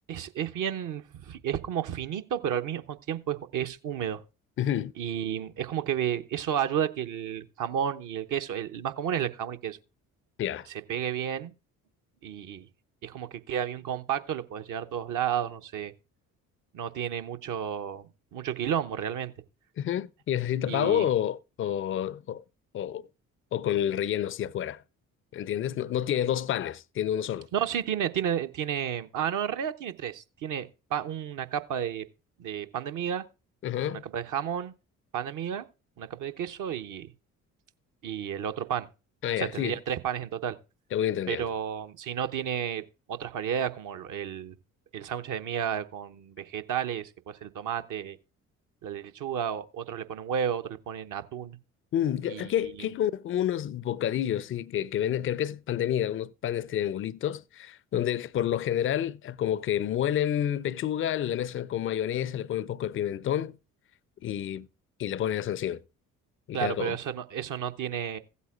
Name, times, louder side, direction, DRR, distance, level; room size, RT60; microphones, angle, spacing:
voice 1, 0.1-4.2 5.0-9.8 10.9-11.5 12.2-12.7 13.0-15.9 16.7-19.3 20.7-21.1 27.5-32.0 32.4-33.2 33.9-34.7 35.1-35.7 36.0-37.1 38.0-38.9 39.4-40.6 41.3-44.6 44.9-48.2 48.8-51.6 52.3-52.5 52.8-52.9 66.5-68.2, right 9 dB, 45° right, 0.9 m, -32 dB
voice 2, 4.6-4.9 10.4-10.7 19.8-22.4 22.7-23.0 23.5-24.8 25.3-27.5 33.6-34.0 39.2-39.8 40.9-41.5 51.9-63.5 64.2-64.7 65.0-65.8 66.5-67.0, left 10 dB, 30° left, 0.5 m, -29 dB
16.0 x 8.3 x 2.4 m
figure-of-eight pair, 45°, 42 cm